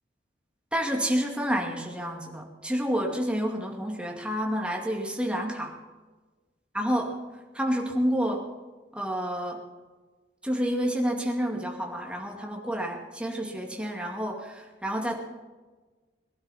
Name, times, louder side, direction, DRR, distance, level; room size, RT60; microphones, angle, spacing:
voice 1, 0.7-5.7 6.7-7.1 7.5-8.5 8.9-9.6 10.4-15.2, equal, 5° right, 1 dB, 2.2 m, -29 dB
22.0 x 12.0 x 4.2 m, 1.3 s
head